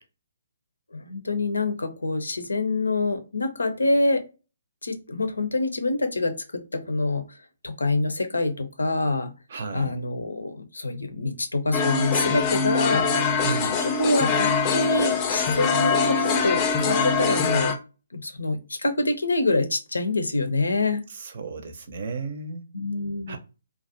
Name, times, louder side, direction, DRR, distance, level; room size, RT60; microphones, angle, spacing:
voice 1, 0.9-4.2 4.8-7.2 7.6-9.3 9.7-13.1 13.6-13.7 14.0-17.7 18.1-21.0 22.7-23.4, left 2 dB, 85° left, 0.6 m, -26 dB
voice 2, 9.5-10.0 13.4-13.8 21.1-22.6 23.3-23.4, right 4 dB, 55° right, 0.5 m, -33 dB
sound 1, 11.7-17.7, left 5 dB, 25° left, 0.4 m, -23 dB
2.4 x 2.1 x 2.7 m
figure-of-eight pair, 140°, 0 cm